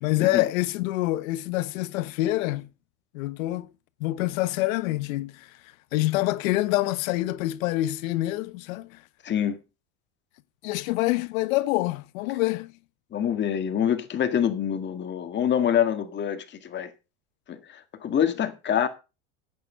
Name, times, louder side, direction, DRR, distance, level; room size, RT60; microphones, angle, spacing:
voice 1, 0.0-2.7 3.1-3.7 4.0-5.6 5.9-9.0 10.6-12.7, left 17 dB, 80° left, 1.0 m, -26 dB
voice 2, 9.2-9.6 13.1-16.9 17.5-18.9, left 9 dB, 25° left, 1.8 m, -26 dB
11.0 x 8.8 x 5.6 m
supercardioid pair, 145°, 40 cm